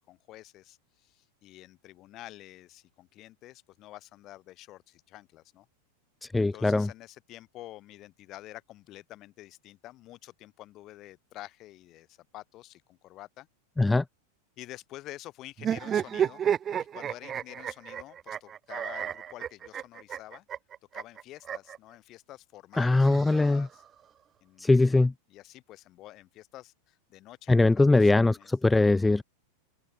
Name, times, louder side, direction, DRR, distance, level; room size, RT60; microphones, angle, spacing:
voice 1, 0.0-5.7 6.5-13.5 14.6-16.4 16.9-20.4 20.9-23.8 24.4-28.5, left 16 dB, 40° left, 6.3 m, -48 dB
voice 2, 6.2-6.9 13.8-14.0 22.8-23.7 24.6-25.1 27.5-29.2, left 2 dB, 10° left, 0.6 m, -22 dB
sound 1, 15.6-21.8 22.7-23.9, right 9 dB, 30° right, 1.4 m, -32 dB
open air
hypercardioid pair, 110°, 0 cm